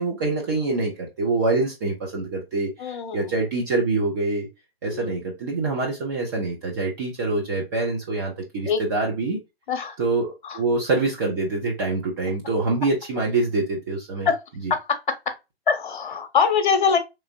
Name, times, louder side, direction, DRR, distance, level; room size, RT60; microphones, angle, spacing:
voice 1, 0.0-4.5 4.8-9.4 10.0-14.3, right 3 dB, 20° right, 0.5 m, -25 dB
voice 2, 2.8-3.4 4.9-5.2 8.7-8.9 9.7-10.0 10.4-10.6 14.2-14.4 14.7-15.0 15.7-17.0, left 6 dB, 50° left, 0.8 m, -23 dB
3.3 x 3.1 x 2.4 m
figure-of-eight pair, 125°, 31 cm